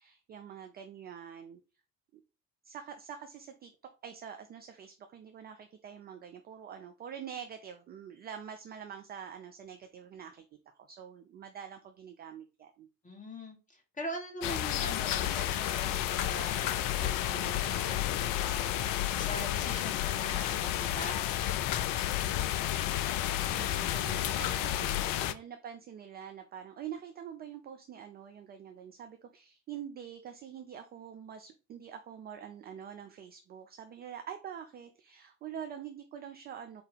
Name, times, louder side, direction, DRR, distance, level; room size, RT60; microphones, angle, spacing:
voice 1, 0.0-1.6 2.1-2.2 2.6-3.7 4.0-12.9 23.1-36.8, right 8 dB, 20° right, 7 dB, 0.3 m, -45 dB
voice 2, 13.0-21.5, left 1 dB, 15° left, 1 dB, 1.8 m, -43 dB
sound 1, 14.4-25.3, left 12 dB, 45° left, 0.5 m, -31 dB
4.5 x 2.7 x 3.7 m, 0.32 s
figure-of-eight pair, 60°, 49 cm